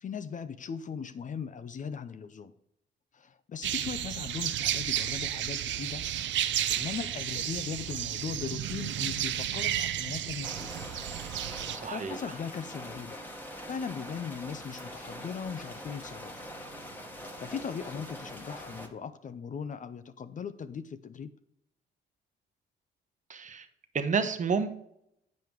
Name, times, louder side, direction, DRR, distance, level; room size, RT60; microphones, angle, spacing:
voice 1, 0.0-2.5 3.1-6.1 6.7-10.7 11.5-13.2 13.7-16.5 17.1-21.3, left 6 dB, 40° left, 11 dB, 0.6 m, -39 dB
sound 1, 3.6-11.8, right 11 dB, 70° right, 0.5 m, -32 dB
sound 2, 10.4-18.9, equal, 10° left, 1.3 m, -43 dB
voice 2, 11.7-12.2 23.3-23.6 23.9-24.7, right 5 dB, 40° right, 10 dB, 0.9 m, -29 dB
7.7 x 5.2 x 4.6 m, 0.77 s
cardioid pair, 90°, 20 cm